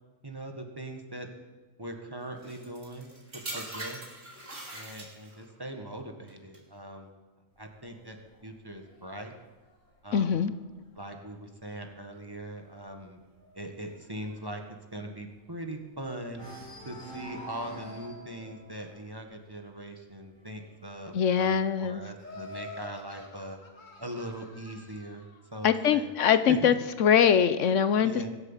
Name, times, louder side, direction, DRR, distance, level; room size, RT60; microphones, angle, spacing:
voice 1, 0.2-1.3 1.8-4.0 4.7-7.1 7.6-9.3 10.0-10.4 10.9-13.2 13.5-14.6 14.9-16.5 16.8-23.6 24.0-25.2 25.5-26.1 26.5-26.8 28.0-28.3, right 1 dB, 20° right, 3 dB, 1.6 m, -41 dB
sound 1, 2.4-5.5 6.3-6.6, right 1 dB, 70° right, 3.4 m, -41 dB
sound 2, 7.5-11.2 11.6-11.9 12.2-12.3 12.7-15.9 16.3-22.8 23.7-24.7, right 1 dB, 35° left, 5.5 m, -49 dB
voice 2, 10.1-10.5 21.1-22.0 25.6-26.7 27.0-28.3, left 8 dB, 75° left, 12 dB, 1.1 m, -23 dB
Laughter, 22.2-25.4, left 3 dB, 90° left, 2.2 m, -47 dB
24.0 x 8.1 x 7.3 m, 1.2 s
omnidirectional pair, 1.3 m